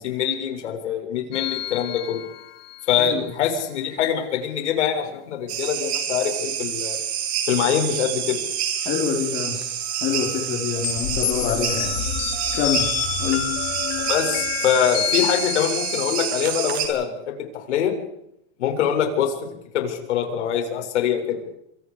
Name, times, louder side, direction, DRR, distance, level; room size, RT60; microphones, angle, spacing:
voice 1, 0.0-2.2 2.9-7.0 7.5-8.4 14.0-17.4 17.7-17.9 18.6-19.5 19.7-21.4, left 8 dB, 75° left, 3 dB, 7.4 m, -24 dB
sound 1, 1.3-2.9 10.8-16.6, left 13 dB, 55° left, 2.9 m, -28 dB
sound 2, 5.5-16.9, right 9 dB, 65° right, 8.0 m, -28 dB
voice 2, 8.8-9.6 10.0-12.0 12.5-12.9 13.2-13.4, left 8 dB, 30° left, 0 dB, 4.8 m, -26 dB
28.0 x 27.5 x 5.2 m, 0.78 s
supercardioid pair, 155°, 35 cm